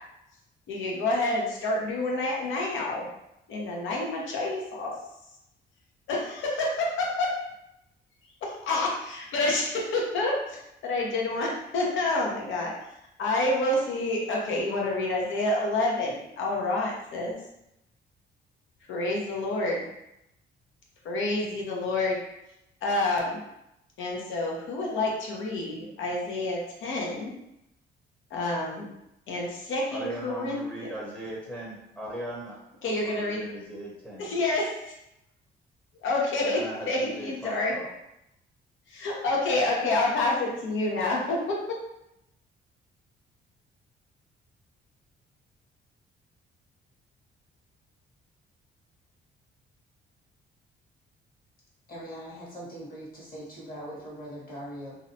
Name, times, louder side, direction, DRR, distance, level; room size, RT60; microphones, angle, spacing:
voice 1, 0.7-3.1 3.5-4.9 6.1-7.3 8.4-12.7 13.2-17.4 18.9-19.8 21.0-22.2 22.8-23.4 24.0-27.3 28.3-28.9 29.3-30.9 32.8-33.4 34.2-34.9 36.0-36.6 36.9-37.7 38.9-41.6, left 2 dB, 80° left, -2 dB, 0.7 m, -28 dB
voice 2, 29.9-32.6 32.9-34.3 36.5-37.9, right 1 dB, 5° left, -5 dB, 0.7 m, -39 dB
voice 3, 51.9-55.0, equal, 45° left, -5 dB, 1.2 m, -41 dB
2.6 x 2.1 x 2.7 m, 0.84 s
cardioid pair, 90°, 20 cm